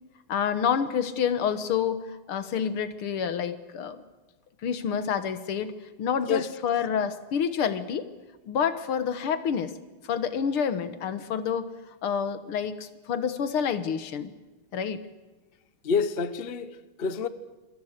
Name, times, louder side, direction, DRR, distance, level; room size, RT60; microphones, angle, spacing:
voice 1, 0.3-4.0 4.6-8.1 8.5-9.7 10.1-11.7 12.0-14.3 14.7-15.0, left 7 dB, 80° left, 2.2 m, -28 dB
voice 2, 15.8-17.3, left 6 dB, 35° left, 1.0 m, -28 dB
27.5 x 23.5 x 6.6 m
omnidirectional pair, 2.3 m